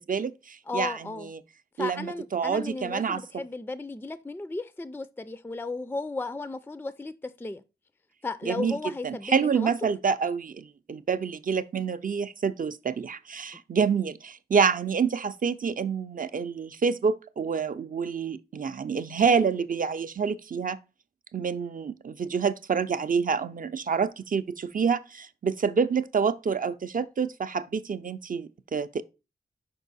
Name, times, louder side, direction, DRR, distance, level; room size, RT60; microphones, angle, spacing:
voice 1, 0.0-1.0 1.2-1.4 1.8-3.2 8.4-20.8 21.3-29.0, right 6 dB, 55° right, 0.5 m, -27 dB
voice 2, 0.7-1.3 1.8-7.6 8.2-9.9 13.5-13.6, left 3 dB, 10° left, 0.3 m, -35 dB
5.5 x 4.5 x 4.1 m
wide cardioid pair, 80°, 17 cm